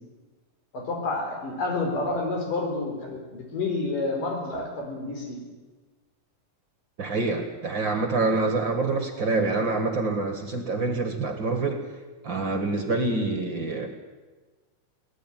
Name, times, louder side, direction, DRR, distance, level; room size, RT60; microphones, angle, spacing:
voice 1, 0.7-5.4, left 3 dB, 80° left, 2 dB, 6.2 m, -29 dB
voice 2, 7.0-11.8 12.2-13.9, right 3 dB, 40° right, 6 dB, 2.1 m, -26 dB
24.0 x 18.0 x 9.2 m, 1.3 s
omnidirectional pair, 3.8 m